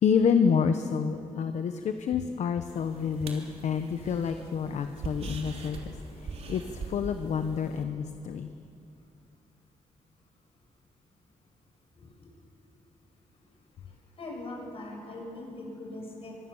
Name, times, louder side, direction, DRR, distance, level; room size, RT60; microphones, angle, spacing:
voice 1, 0.0-5.8 6.2-6.6 6.9-8.5, left 6 dB, 60° left, 8 dB, 1.0 m, -28 dB
sound 1, 2.6-7.8, right 3 dB, 55° right, 3.5 m, -42 dB
voice 2, 11.9-12.3 14.2-16.5, left 2 dB, 45° left, 0 dB, 6.9 m, -41 dB
24.5 x 24.5 x 7.2 m, 2.8 s
wide cardioid pair, 155°, 13 cm